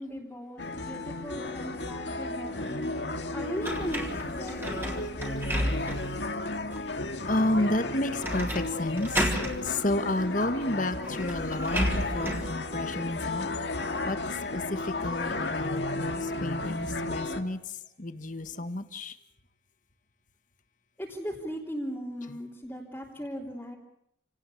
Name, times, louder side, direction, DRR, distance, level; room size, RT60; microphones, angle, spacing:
voice 1, 0.0-2.9 3.3-5.7 21.0-23.8, equal, 10° left, -5 dB, 3.4 m, -38 dB
sound 1, 0.6-17.4, left 2 dB, 70° left, 2.3 m, -33 dB
sound 2, 3.6-6.2 6.7-6.8 8.2-8.7 9.0-9.6 10.6-10.7 11.0-12.5, equal, 10° right, 3.8 m, -31 dB
voice 2, 7.3-9.3 9.6-13.5 13.8-14.2 14.5-17.6 18.0-19.1, left 1 dB, 45° left, 11 dB, 1.6 m, -31 dB
29.0 x 18.5 x 8.5 m, 0.77 s
head